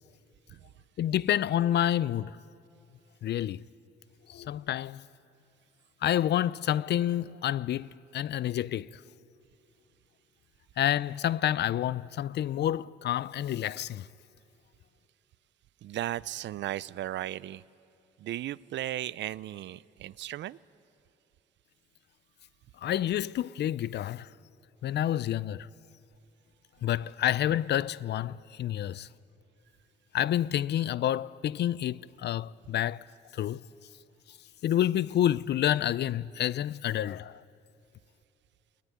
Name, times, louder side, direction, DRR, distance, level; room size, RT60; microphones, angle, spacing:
voice 1, 1.0-2.4 3.2-3.6 4.3-5.0 6.0-8.9 10.8-14.1 22.8-24.3 24.8-25.7 26.8-29.1 30.1-33.0 33.3-33.6 34.6-37.4, left 11 dB, 60° left, 0.5 m, -28 dB
voice 2, 15.8-17.6 18.2-20.6, right 13 dB, 65° right, 0.5 m, -36 dB
22.5 x 19.0 x 9.6 m
cardioid pair, 90°, 20 cm